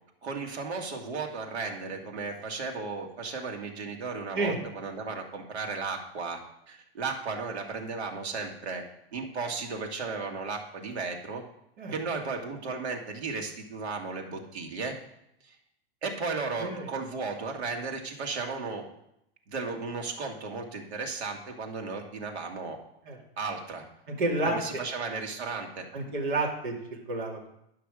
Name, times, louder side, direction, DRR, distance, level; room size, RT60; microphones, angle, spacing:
voice 1, 0.2-6.4 6.7-8.8 9.1-11.4 11.9-15.0 15.4-15.6 16.0-18.9 19.5-22.8 23.4-23.9 24.4-25.9, right 4 dB, 80° right, 2 dB, 2.0 m, -35 dB
voice 2, 24.2-24.8 25.9-27.5, right 2 dB, 50° right, -2 dB, 2.6 m, -30 dB
11.0 x 5.9 x 5.0 m, 0.79 s
supercardioid pair, 170°, 32 cm